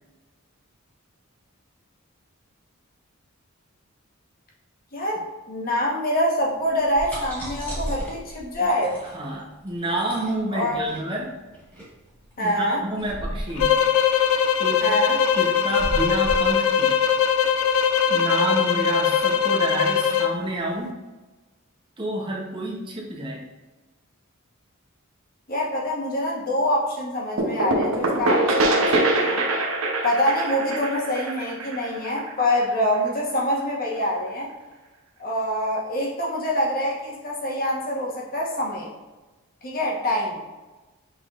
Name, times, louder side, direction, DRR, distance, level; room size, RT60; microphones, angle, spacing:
voice 1, 4.9-5.2 5.5-8.9 10.5-10.9 12.4-12.8 14.8-15.2 25.5-29.5 30.0-34.5 35.2-38.9 39.6-40.4, equal, 40° left, -3 dB, 1.0 m, -25 dB
sound 1, 6.7-18.1, equal, 5° left, 1.5 m, -35 dB
voice 2, 9.1-11.4 12.4-13.8 14.6-14.9 15.3-17.0 18.1-21.0 22.0-23.4, right 1 dB, 25° right, -2 dB, 0.9 m, -29 dB
sound 2, 13.6-20.4, left 7 dB, 70° left, 0.3 m, -21 dB
sound 3, 27.4-33.0, right 2 dB, 70° right, 0.7 m, -24 dB
5.9 x 3.5 x 2.4 m, 1.2 s
head